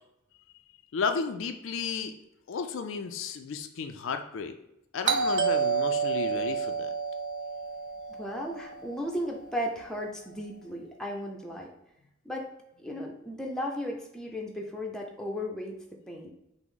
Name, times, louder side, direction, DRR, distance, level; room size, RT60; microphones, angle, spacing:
voice 1, 0.9-2.2 2.5-4.5 4.9-6.9, left 5 dB, 65° left, 7 dB, 0.4 m, -33 dB
Doorbell, 5.1-9.7, right 5 dB, 60° right, 0.5 m, -30 dB
voice 2, 8.1-11.7 12.2-12.5 12.8-15.8 16.1-16.3, equal, 5° left, 0 dB, 0.6 m, -35 dB
5.9 x 2.1 x 3.7 m, 0.84 s
head